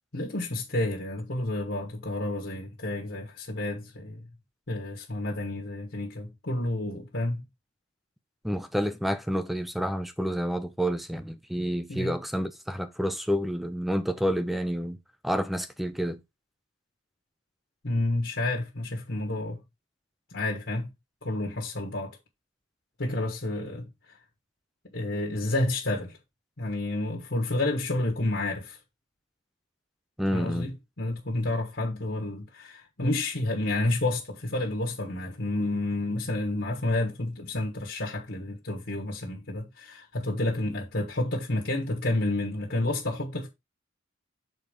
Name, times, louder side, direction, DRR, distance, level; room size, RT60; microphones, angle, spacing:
voice 1, 0.1-4.3 4.7-7.4 11.9-12.1 17.8-19.6 20.3-20.9 21.2-22.2 23.0-24.2 24.9-26.2 26.6-28.8 30.3-43.5, left 2 dB, 60° left, 1.4 m, -30 dB
voice 2, 8.4-15.0 15.2-16.2 30.2-30.7, equal, ahead, 0.6 m, -29 dB
7.0 x 4.1 x 5.0 m
head